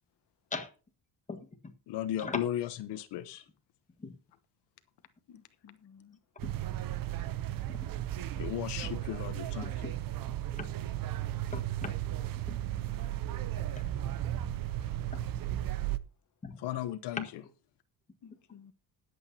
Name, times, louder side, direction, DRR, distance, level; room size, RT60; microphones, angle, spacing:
voice 1, 1.3-1.7 2.2-2.5 4.0-4.2 6.4-6.5 7.7-7.9 8.8-8.9 9.6-9.9 10.5-10.7 11.5-11.9 13.6-13.7 14.8-15.2 16.4-16.6 17.2-17.3, left 4 dB, 20° left, 1.5 m, -40 dB
voice 2, 1.9-3.4 8.4-9.9 16.6-17.3, left 12 dB, 75° left, 0.9 m, -35 dB
voice 3, 5.3-6.2 12.5-13.3 18.2-18.7, left 7 dB, 45° left, 1.2 m, -55 dB
sound 1, 6.4-16.0, right 13 dB, 55° right, 0.7 m, -35 dB
20.0 x 8.1 x 2.8 m
cardioid pair, 140°, 42 cm